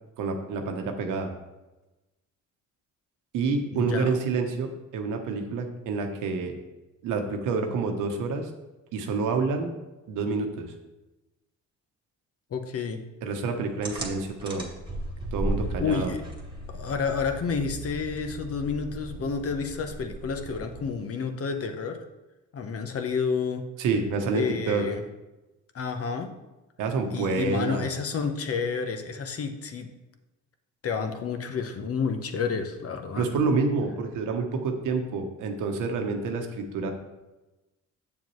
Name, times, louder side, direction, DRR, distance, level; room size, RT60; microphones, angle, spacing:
voice 1, 0.2-1.3 3.3-6.5 7.0-8.5 8.9-9.7 10.1-10.7 13.2-14.7 15.3-16.1 23.8-24.9 26.8-27.9 33.2-36.9, right 4 dB, 90° right, 4 dB, 1.1 m, -28 dB
voice 2, 3.7-4.2 12.5-13.0 15.8-16.2 16.7-22.0 22.5-23.6 24.3-25.0 25.7-26.3 27.1-29.9 30.8-33.3, left 5 dB, 50° left, 6 dB, 0.9 m, -30 dB
sound 1, 13.8-21.0, right 1 dB, 15° right, 1.7 m, -36 dB
7.5 x 6.9 x 3.2 m, 1.1 s
cardioid pair, 90°, 30 cm